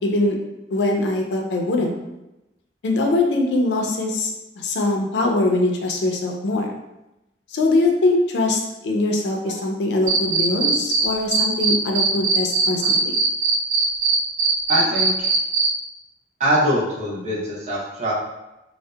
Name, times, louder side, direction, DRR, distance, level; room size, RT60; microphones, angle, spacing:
voice 1, 0.0-0.4 0.7-1.9 2.8-4.3 4.6-6.7 7.5-13.1, left 2 dB, 70° left, 1 dB, 0.4 m, -22 dB
Cricket, 10.1-11.0 11.3-15.7, right 5 dB, 75° right, 0.4 m, -19 dB
voice 2, 14.7-15.3 16.4-18.1, equal, 40° right, -7 dB, 0.7 m, -22 dB
2.7 x 2.0 x 2.2 m, 0.95 s
head